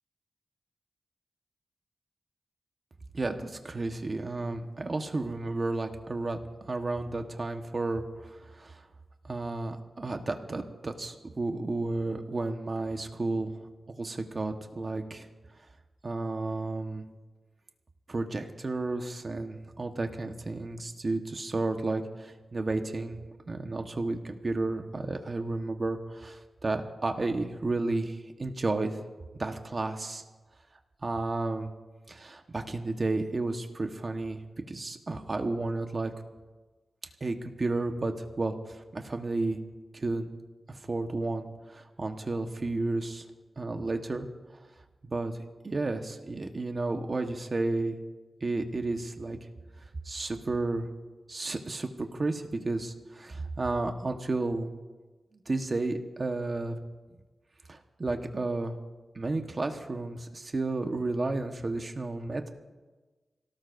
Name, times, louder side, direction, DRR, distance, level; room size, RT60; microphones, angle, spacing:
voice 1, 3.1-8.8 9.2-13.5 13.9-15.3 16.0-17.0 18.1-23.2 23.5-29.0 29.3-30.2 31.0-31.7 32.1-34.4 34.7-36.1 37.2-39.6 39.9-40.3 40.7-43.2 43.6-44.3 45.0-45.3 45.6-48.0 48.4-49.4 50.0-50.9 51.3-54.7 55.3-56.8 57.7-58.7 59.1-62.5, right 2 dB, 40° right, 5 dB, 1.3 m, -32 dB
25.5 x 17.5 x 2.7 m, 1.3 s
wide cardioid pair, 95°, 0 cm